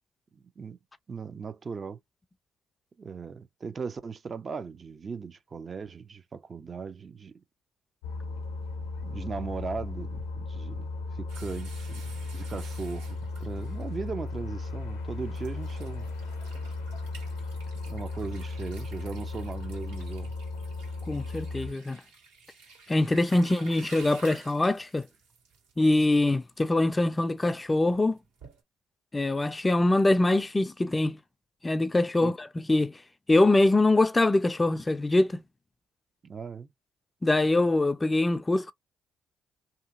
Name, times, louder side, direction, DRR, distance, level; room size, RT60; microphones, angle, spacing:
voice 1, 0.3-0.8 1.1-2.0 3.0-7.3 9.0-10.9 11.2-16.1 17.9-20.3 32.2-32.3 36.2-36.7, right 5 dB, 40° right, 0.5 m, -38 dB
sound 1, 8.0-21.7, left 3 dB, 80° left, 0.6 m, -36 dB
sound 2, 11.3-14.3 14.9-15.0 15.3-28.6, right 4 dB, 75° right, 1.7 m, -52 dB
voice 2, 21.1-22.0 22.9-25.1 25.8-28.2 29.1-31.2 31.6-33.0 33.3-35.4 37.2-38.7, left 2 dB, 20° left, 0.4 m, -23 dB
2.8 x 2.6 x 2.4 m
hypercardioid pair, 45°, 0 cm